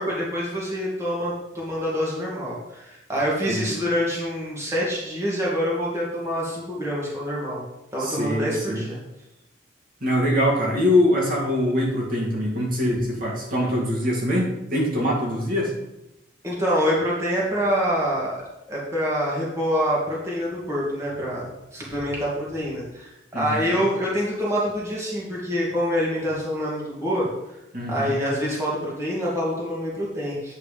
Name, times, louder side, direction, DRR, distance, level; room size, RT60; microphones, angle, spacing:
voice 1, 0.0-7.6 7.9-9.0 16.4-18.4 18.7-27.6 27.9-30.5, equal, 15° right, -6 dB, 2.1 m, -26 dB
voice 2, 8.0-8.8 10.0-15.7 23.3-23.8 27.7-28.1, left 1 dB, 45° right, -4 dB, 2.2 m, -23 dB
8.9 x 4.7 x 5.1 m, 0.91 s
head